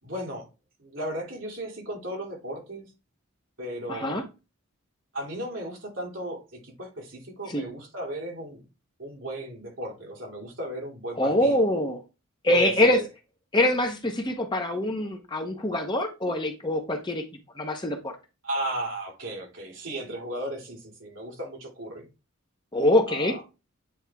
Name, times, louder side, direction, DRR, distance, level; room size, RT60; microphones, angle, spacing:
voice 1, 0.0-0.5 0.8-2.8 3.6-4.2 5.1-8.6 9.0-11.6 12.5-13.1 18.4-22.1 23.1-23.4, right 1 dB, 65° right, 2.7 m, -35 dB
voice 2, 3.9-4.2 7.5-7.7 11.2-12.0 12.4-13.0 13.5-17.2 17.6-18.1 22.7-23.4, left 1 dB, 20° left, 0.8 m, -24 dB
8.6 x 3.5 x 3.5 m
head